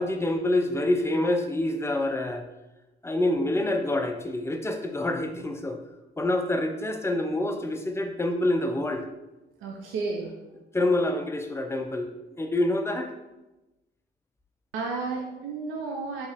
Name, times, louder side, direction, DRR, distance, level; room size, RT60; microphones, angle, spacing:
voice 1, 0.0-2.5 3.0-5.8 6.2-9.0 10.7-12.1 12.4-13.1, left 1 dB, 15° left, 5 dB, 0.5 m, -26 dB
voice 2, 9.6-10.3 14.7-16.3, right 4 dB, 85° right, 0 dB, 0.6 m, -32 dB
4.4 x 3.0 x 3.4 m, 1.0 s
cardioid pair, 90°, 20 cm